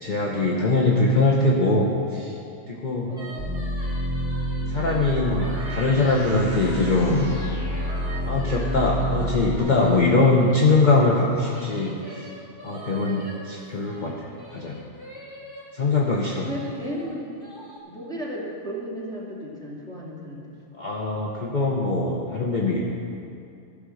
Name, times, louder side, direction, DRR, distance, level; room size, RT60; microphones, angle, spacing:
voice 1, 0.0-2.3 2.7-3.1 4.7-7.3 8.3-12.2 12.6-14.1 14.5-14.8 15.7-16.5 20.8-22.8, left 2 dB, 40° left, -3 dB, 1.0 m, -22 dB
voice 2, 3.1-3.4 16.4-17.3 17.9-20.6, equal, 5° left, -6 dB, 2.2 m, -34 dB
sound 1, 3.2-10.8 11.4-15.6 16.1-17.8, right 1 dB, 20° left, 2.4 m, -43 dB
sound 2, 3.4-9.6, equal, 40° right, 2.7 m, -29 dB
14.5 x 5.2 x 6.3 m, 2.6 s
omnidirectional pair, 1.2 m